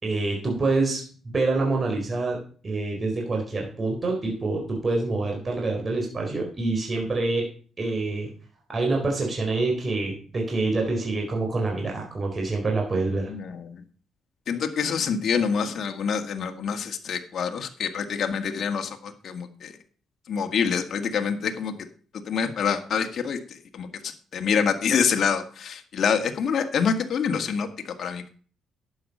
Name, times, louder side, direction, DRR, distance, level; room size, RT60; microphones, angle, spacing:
voice 1, 0.0-7.5 7.8-8.3 8.7-13.3, right 3 dB, 35° right, 0 dB, 4.1 m, -26 dB
voice 2, 13.3-13.8 14.5-19.7 20.3-21.7 22.1-28.3, left 6 dB, 55° left, 5 dB, 1.7 m, -26 dB
11.5 x 8.6 x 5.5 m, 0.42 s
cardioid pair, 90°, 0 cm